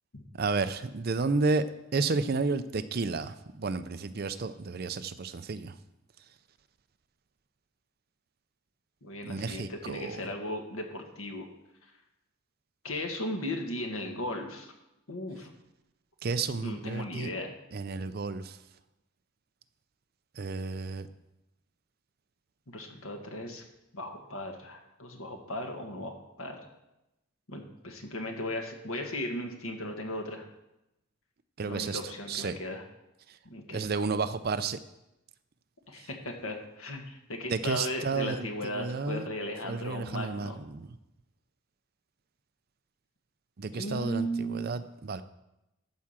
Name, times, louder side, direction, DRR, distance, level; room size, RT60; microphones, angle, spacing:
voice 1, 0.4-1.6 1.9-5.7 9.2-10.2 16.2-17.3 17.7-18.6 20.4-21.1 31.6-32.0 32.3-32.6 33.7-34.8 37.5-38.5 38.7-39.3 39.6-40.8 43.6-45.2, right 4 dB, 45° right, 12 dB, 0.5 m, -31 dB
voice 2, 9.0-11.5 12.8-14.7 15.1-15.5 16.6-17.5 22.7-23.6 23.9-26.6 27.5-30.5 31.6-32.8 33.4-33.9 35.9-40.6 43.7-44.8, left 1 dB, 75° left, 3 dB, 1.6 m, -36 dB
12.0 x 4.8 x 7.3 m, 0.91 s
head